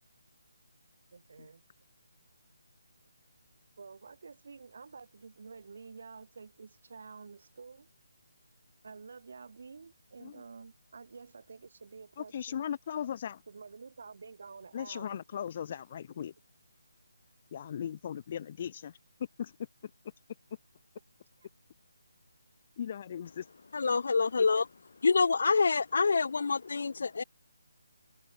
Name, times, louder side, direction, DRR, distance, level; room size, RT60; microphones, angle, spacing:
voice 1, 1.1-1.6 3.8-7.9 8.8-12.6 13.5-15.2 21.4-21.5, right 5 dB, 60° right, 2.1 m, -50 dB
voice 2, 12.2-13.4 14.7-16.3 17.5-18.9 19.4-19.5 22.8-23.4 24.4-24.5, left 9 dB, 35° left, 1.7 m, -38 dB
voice 3, 23.7-24.7 25.0-27.2, left 4 dB, 60° left, 0.4 m, -26 dB
figure-of-eight pair, 155°, 0 cm